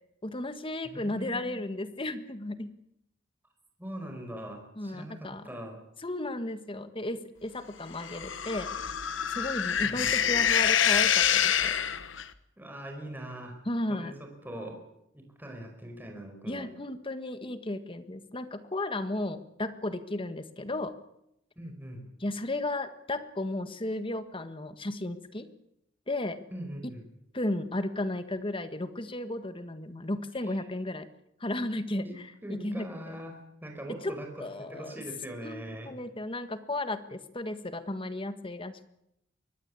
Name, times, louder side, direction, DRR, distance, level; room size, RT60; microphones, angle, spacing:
voice 1, 0.2-2.7 4.8-5.5 6.0-8.9 9.3-11.7 13.6-14.1 16.5-20.9 22.2-25.5 26.1-26.4 26.8-26.9 27.3-31.1 31.4-33.2 33.9-34.1 34.4-35.0 35.4-38.9, left 1 dB, 30° left, 10 dB, 1.6 m, -34 dB
voice 2, 0.8-1.6 3.8-5.8 9.8-10.2 12.6-13.6 13.9-14.8 15.1-16.7 21.5-22.0 26.5-27.0 30.4-30.6 32.0-32.2 32.4-35.9, right 1 dB, 10° right, 3 dB, 5.0 m, -42 dB
sound 1, 8.0-12.3, left 9 dB, 85° left, 1.2 m, -26 dB
23.5 x 18.5 x 8.6 m, 0.80 s
head